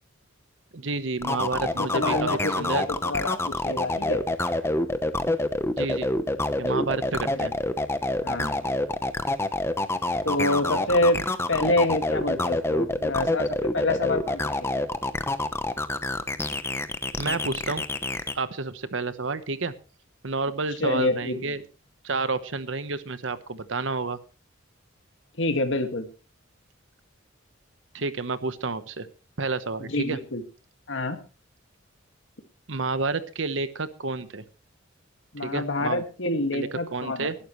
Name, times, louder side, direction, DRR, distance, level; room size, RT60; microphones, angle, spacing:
voice 1, 0.7-2.8 5.7-6.1 6.6-7.5 17.2-17.8 18.3-19.7 20.2-21.6 22.0-24.2 27.9-29.1 29.4-30.2 32.7-34.4 35.4-36.0 36.5-37.4, right 3 dB, 65° right, 13 dB, 1.1 m, -30 dB
sound 1, 1.2-18.3, left 2 dB, 10° left, 0.9 m, -27 dB
voice 2, 1.8-4.2 7.4-7.5 8.2-8.7 10.2-11.2 11.5-14.8 20.8-21.4 25.4-26.1 29.8-30.4 30.9-31.2 35.3-37.3, left 2 dB, 65° left, 7 dB, 2.0 m, -27 dB
20.0 x 11.5 x 3.1 m, 0.33 s
head